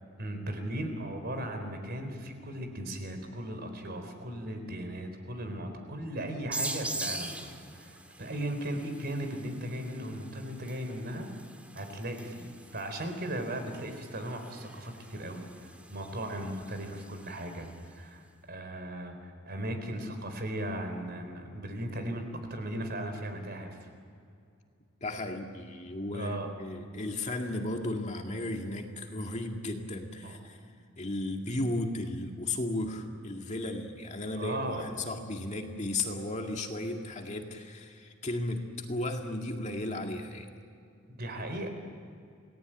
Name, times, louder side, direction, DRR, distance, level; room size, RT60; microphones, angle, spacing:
voice 1, 0.2-11.3 11.7-22.2 22.5-23.9 26.1-26.5 30.2-30.4 34.3-34.9 41.1-41.7, right 1 dB, 45° right, 6 dB, 4.1 m, -37 dB
sound 1, 6.5-17.9, right 1 dB, 5° right, 1.7 m, -43 dB
voice 2, 25.0-30.6 31.0-40.5, left 2 dB, 35° left, 3 dB, 2.1 m, -35 dB
28.5 x 18.5 x 9.1 m, 2.4 s
head